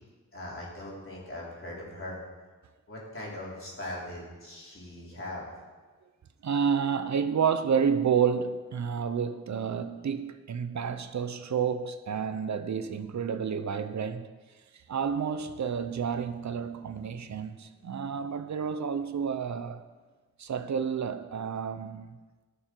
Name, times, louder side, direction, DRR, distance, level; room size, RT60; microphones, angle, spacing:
voice 1, 0.3-2.2 2.9-5.5, left 1 dB, 45° left, 3.7 m, -40 dB
voice 2, 6.4-14.3 14.9-19.8 20.4-22.2, right 7 dB, 65° right, 0.7 m, -30 dB
15.0 x 6.8 x 4.5 m
wide cardioid pair, 75°, 30 cm